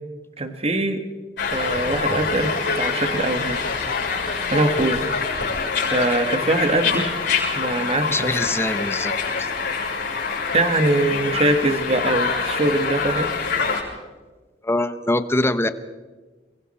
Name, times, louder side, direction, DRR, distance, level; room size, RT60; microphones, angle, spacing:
voice 1, 0.4-1.0 1.5-3.7 4.5-5.0 5.8-7.1 7.5-8.4 10.5-13.3, right 2 dB, 35° right, 7 dB, 1.5 m, -22 dB
sound 1, 1.4-13.8, left 5 dB, 65° left, 7.4 m, -25 dB
voice 2, 8.1-9.1 9.4-9.5 14.6-15.7, left 1 dB, 15° left, 11 dB, 1.0 m, -23 dB
29.5 x 22.5 x 4.3 m, 1.3 s
head